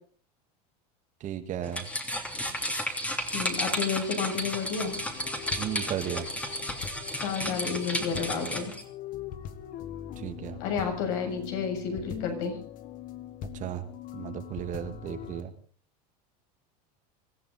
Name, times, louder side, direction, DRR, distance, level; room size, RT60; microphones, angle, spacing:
voice 1, 1.2-1.9 5.6-6.3 10.2-10.6 13.5-13.9 14.1-15.5, right 10 dB, 40° right, 8 dB, 2.0 m, -34 dB
sound 1, 1.6-8.8, equal, 5° left, 3.1 m, -33 dB
voice 2, 3.3-4.9 7.2-8.7 10.6-12.6, left 6 dB, 65° left, 3 dB, 7.5 m, -31 dB
sound 2, 4.8-15.4, left 10 dB, 45° left, 1.6 m, -42 dB
25.0 x 14.0 x 4.1 m, 0.41 s
supercardioid pair, 120°, 20 cm